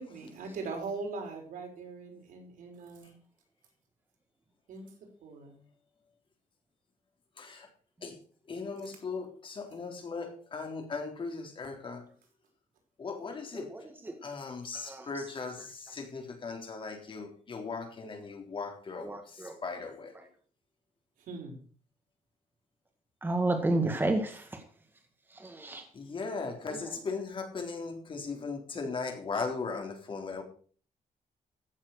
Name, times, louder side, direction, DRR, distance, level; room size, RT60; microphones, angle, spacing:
voice 1, 0.0-3.1 4.7-4.9 5.2-5.6 21.3-21.6, right 4 dB, 80° right, 1 dB, 5.5 m, -40 dB
voice 2, 8.5-12.0 13.0-13.7 14.2-15.6 15.9-19.1 19.6-20.1 26.0-30.4, left 4 dB, 40° left, 3 dB, 3.7 m, -38 dB
voice 3, 13.5-14.1 14.9-15.3 19.0-19.5 23.2-24.5 25.4-25.8 26.7-27.0, right 2 dB, 15° right, 4 dB, 1.9 m, -31 dB
15.5 x 7.5 x 6.5 m, 0.44 s
cardioid pair, 140°, 14 cm